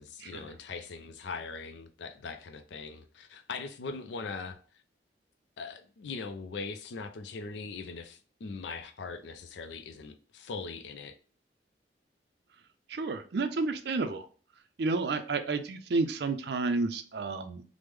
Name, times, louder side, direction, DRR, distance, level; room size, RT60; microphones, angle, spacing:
voice 1, 0.0-4.6 5.6-11.1, left 4 dB, 75° left, 0.4 m, -41 dB
voice 2, 12.9-14.2 14.8-17.6, right 3 dB, 60° right, 0.4 m, -31 dB
3.2 x 2.0 x 3.4 m
head